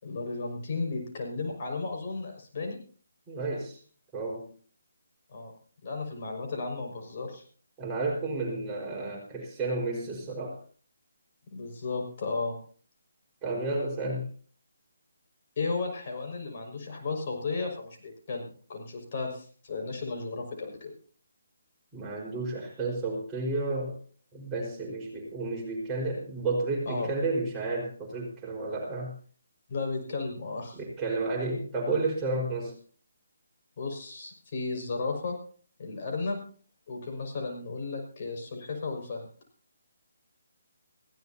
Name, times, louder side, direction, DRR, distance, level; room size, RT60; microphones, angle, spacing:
voice 1, 0.0-2.8 5.3-5.5 5.8-7.4 11.5-12.6 15.6-20.9 26.9-27.1 29.7-30.8 33.8-35.4 35.8-36.4 36.9-39.3, left 3 dB, 45° left, 2 dB, 5.8 m, -34 dB
voice 2, 3.3-3.8 4.1-4.5 7.8-10.6 13.4-14.3 21.9-24.0 24.3-29.1 30.7-32.7, right 2 dB, 15° right, -3 dB, 4.9 m, -31 dB
20.0 x 16.5 x 2.9 m, 0.44 s
hypercardioid pair, 155°, 0 cm